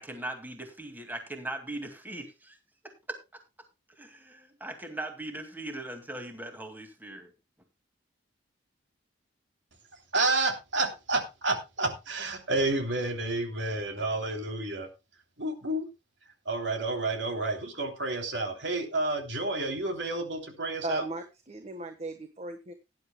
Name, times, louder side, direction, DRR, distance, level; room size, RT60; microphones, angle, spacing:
voice 1, 0.0-2.6 2.8-3.2 4.0-7.3, right 1 dB, 10° right, 5 dB, 2.2 m, -39 dB
voice 2, 10.1-14.9 15.4-15.9 16.4-21.0, right 2 dB, 70° right, 4 dB, 3.1 m, -30 dB
voice 3, 20.8-22.7, right 3 dB, 35° right, 7 dB, 1.2 m, -36 dB
18.0 x 10.5 x 2.2 m, 0.25 s
head